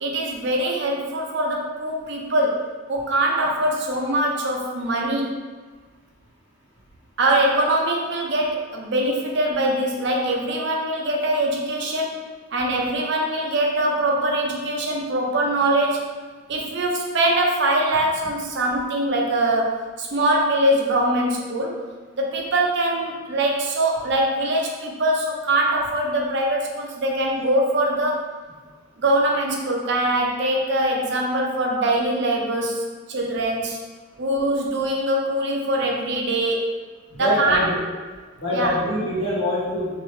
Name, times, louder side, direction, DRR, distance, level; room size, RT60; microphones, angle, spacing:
voice 1, 0.0-2.6 2.9-5.4 7.2-12.2 12.5-16.0 16.5-21.8 22.1-28.2 29.0-32.8 33.1-33.8 34.2-36.7 37.2-37.7 38.5-38.8, right 1 dB, 60° right, -1 dB, 0.6 m, -22 dB
voice 2, 37.1-37.8 38.4-39.9, left 1 dB, 85° left, -8 dB, 1.4 m, -24 dB
2.9 x 2.8 x 3.2 m, 1.4 s
head